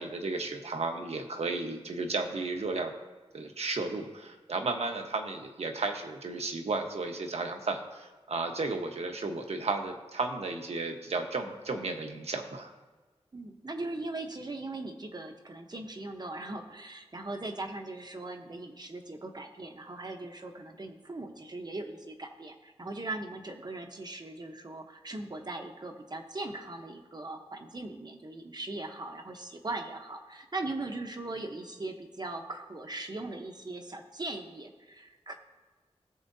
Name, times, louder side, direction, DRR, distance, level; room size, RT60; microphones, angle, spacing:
voice 1, 0.0-2.9 3.3-12.7, right 3 dB, 70° right, 4 dB, 1.2 m, -33 dB
voice 2, 13.3-35.3, right 2 dB, 40° right, 3 dB, 1.0 m, -39 dB
17.5 x 7.1 x 2.7 m, 1.3 s
wide cardioid pair, 75°, 11 cm